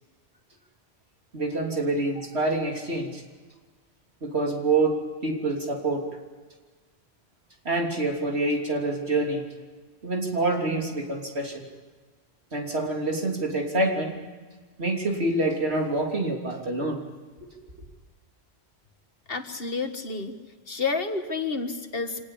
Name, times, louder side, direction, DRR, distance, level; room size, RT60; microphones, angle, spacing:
voice 1, 1.3-3.2 4.2-6.1 7.7-9.4 10.0-11.6 12.5-14.2 14.8-17.0, right 2 dB, 75° right, 1 dB, 3.6 m, -26 dB
voice 2, 19.3-20.4 20.7-22.3, left 4 dB, 60° left, 6 dB, 1.9 m, -30 dB
25.5 x 19.0 x 8.6 m, 1.4 s
omnidirectional pair, 1.1 m